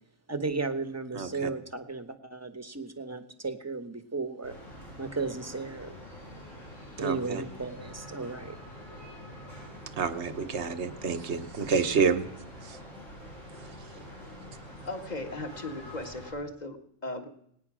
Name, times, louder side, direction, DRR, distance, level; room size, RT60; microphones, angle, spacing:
voice 1, 0.3-4.5 5.0-5.9 7.0-8.5, right 3 dB, 15° right, 8 dB, 1.0 m, -34 dB
voice 2, 1.1-1.5 7.0-7.4 10.0-12.3 12.6-12.8, right 5 dB, 60° right, 10 dB, 1.3 m, -28 dB
sound 1, 4.4-16.3, equal, 75° left, 8.2 m, -46 dB
voice 3, 14.8-17.3, left 2 dB, 35° left, 6 dB, 1.7 m, -37 dB
19.0 x 9.6 x 6.1 m, 0.72 s
omnidirectional pair, 1.3 m